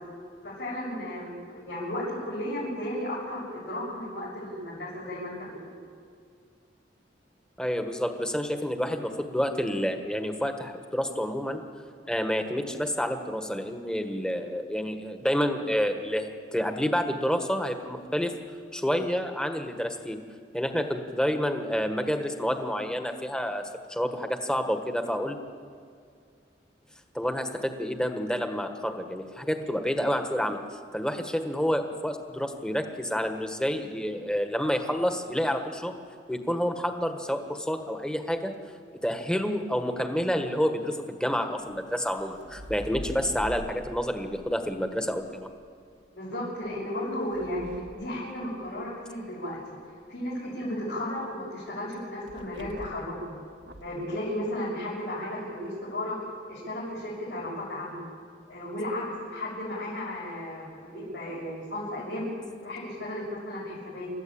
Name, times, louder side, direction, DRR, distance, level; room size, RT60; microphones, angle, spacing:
voice 1, 0.4-5.8 46.1-49.6 50.1-53.4 53.8-56.1 56.5-58.0 58.5-62.3 62.6-64.1, left 1 dB, 70° left, -8 dB, 6.9 m, -34 dB
voice 2, 7.6-11.6 12.1-18.3 18.7-20.2 20.5-25.4 27.1-30.6 30.9-35.9 36.3-38.5 39.0-45.5, equal, 5° left, 6 dB, 1.6 m, -29 dB
sound 1, 41.6-45.7 46.6-49.0 52.3-53.2 53.6-54.0, right 1 dB, 85° right, 1.7 m, -44 dB
29.0 x 13.5 x 8.8 m, 2.2 s
head